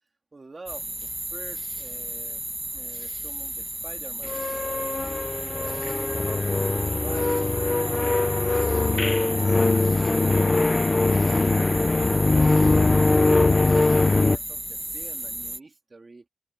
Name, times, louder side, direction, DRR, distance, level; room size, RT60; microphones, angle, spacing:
voice 1, 0.3-2.5 2.7-5.2 5.5-6.5 7.0-9.9 10.2-10.6 11.0-16.3, right 3 dB, 30° right, 3.8 m, -45 dB
sound 1, 0.7-15.6, right 1 dB, 10° right, 2.0 m, -34 dB
sound 2, 4.2-14.4, left 3 dB, 25° left, 0.9 m, -22 dB
wide cardioid pair, 155°, 0 cm